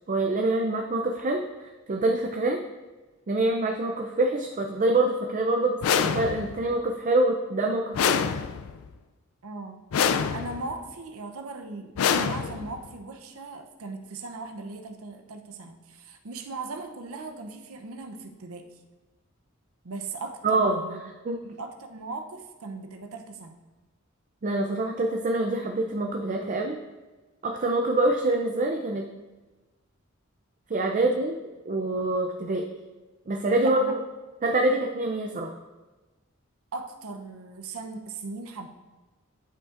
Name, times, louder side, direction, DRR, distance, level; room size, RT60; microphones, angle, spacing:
voice 1, 0.1-2.6 3.3-8.2 20.4-20.8 21.2-21.4 24.4-26.8 27.4-29.0 30.7-31.4 31.7-32.6 33.3-34.0 34.4-35.5, right 2 dB, 40° right, 2 dB, 0.5 m, -25 dB
sound 1, 5.8-6.7 7.9-8.9 9.9-10.7 12.0-12.9, left 7 dB, 85° left, 0.4 m, -26 dB
voice 2, 9.4-9.8 10.3-18.7 19.8-21.0 21.4-23.6 33.6-33.9 36.7-38.7, right 3 dB, 85° right, 5 dB, 0.7 m, -38 dB
11.5 x 5.2 x 2.5 m, 1.2 s
head